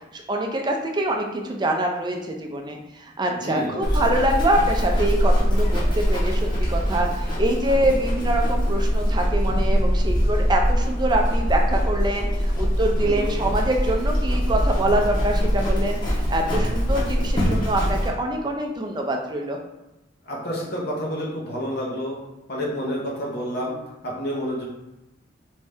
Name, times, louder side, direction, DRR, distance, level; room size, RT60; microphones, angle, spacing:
voice 1, 0.1-19.6, right 1 dB, 25° right, 2 dB, 0.4 m, -25 dB
voice 2, 3.3-4.1 13.0-13.5 20.2-22.2 22.5-23.7 24.0-24.6, equal, 55° left, -3 dB, 0.8 m, -29 dB
Livestock farm animals working animals, 3.8-18.1, equal, 25° left, 0.9 m, -22 dB
3.2 x 2.6 x 3.4 m, 0.93 s
head